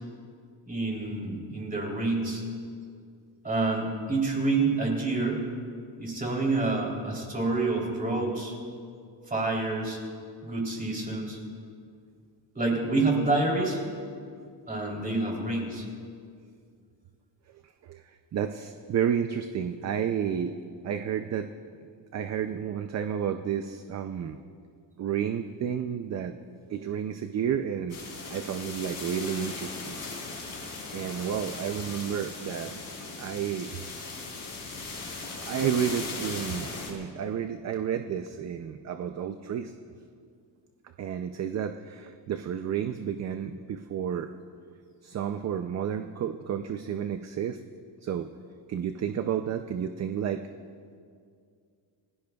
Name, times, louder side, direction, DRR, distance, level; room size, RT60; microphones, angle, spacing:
voice 1, 0.7-2.4 3.4-5.4 6.0-8.5 9.3-10.0 10.4-11.4 12.5-13.8 14.7-15.9, right 3 dB, 20° right, -1 dB, 3.2 m, -28 dB
voice 2, 18.3-20.6 20.8-21.5 22.1-24.4 25.0-26.4 26.7-28.0 28.3-30.0 30.6-33.8 35.5-39.7 41.0-44.3 45.0-47.6 48.0-48.3 48.7-50.4, right 8 dB, 35° right, 8 dB, 0.5 m, -31 dB
sound 1, 27.9-36.9, left 3 dB, 35° left, 3.4 m, -38 dB
29.0 x 16.5 x 2.3 m, 2.2 s
cardioid pair, 150°, 46 cm